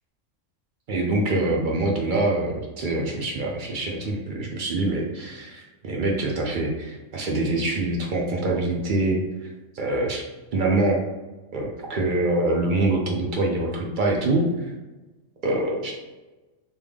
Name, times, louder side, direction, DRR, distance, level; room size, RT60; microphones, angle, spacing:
voice 1, 0.9-10.2 10.5-11.0 11.5-14.7 15.4-16.0, right 2 dB, 60° right, 0 dB, 0.5 m, -25 dB
3.4 x 2.3 x 3.4 m, 1.1 s
omnidirectional pair, 1.4 m